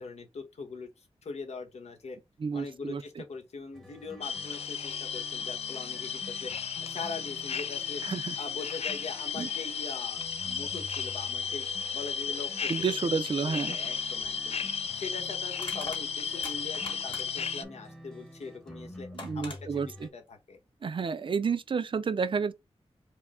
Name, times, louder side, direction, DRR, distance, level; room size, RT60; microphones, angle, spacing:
voice 1, 0.0-2.2 2.5-6.5 6.8-8.0 8.4-11.7 11.9-12.9 13.4-19.1 19.3-20.6, left 4 dB, 85° left, 1.1 m, -42 dB
voice 2, 2.4-3.2 8.0-8.4 9.3-9.5 12.7-13.8 19.2-20.1 20.8-22.5, right 5 dB, 50° right, 0.4 m, -30 dB
sound 1, 3.7-20.1, left 1 dB, 5° left, 0.8 m, -49 dB
sound 2, 4.2-17.6, left 6 dB, 70° left, 0.4 m, -34 dB
Crushing, 14.2-14.3 15.6-17.5 18.7-18.8 19.2-19.6, left 2 dB, 50° left, 1.9 m, -42 dB
4.7 x 2.1 x 3.6 m
wide cardioid pair, 90°, 11 cm